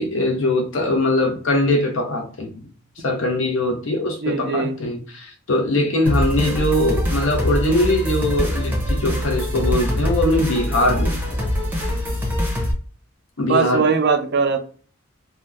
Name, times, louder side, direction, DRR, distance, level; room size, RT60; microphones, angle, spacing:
voice 1, 0.0-2.5 3.0-11.4 13.4-13.9, left 1 dB, 60° left, 0.7 m, -21 dB
voice 2, 4.2-4.7 13.5-14.6, right 5 dB, 50° right, 0.4 m, -20 dB
sound 1, 6.1-12.7, equal, 10° right, 0.7 m, -23 dB
2.7 x 2.1 x 3.4 m
head